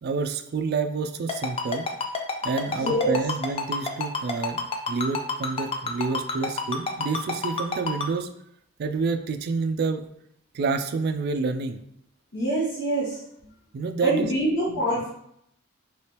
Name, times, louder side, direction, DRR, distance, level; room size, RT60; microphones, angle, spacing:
voice 1, 0.0-1.9 2.4-4.6 4.9-8.3 8.8-10.0 10.5-11.8 13.7-14.3 14.6-14.8, right 4 dB, 50° right, 7 dB, 0.3 m, -28 dB
Ringtone, 1.3-8.1, left 4 dB, 30° left, 0.4 m, -28 dB
voice 2, 2.8-3.2 12.3-13.2 14.0-15.1, right 1 dB, 85° left, -9 dB, 1.1 m, -25 dB
3.3 x 3.2 x 2.9 m, 0.73 s
head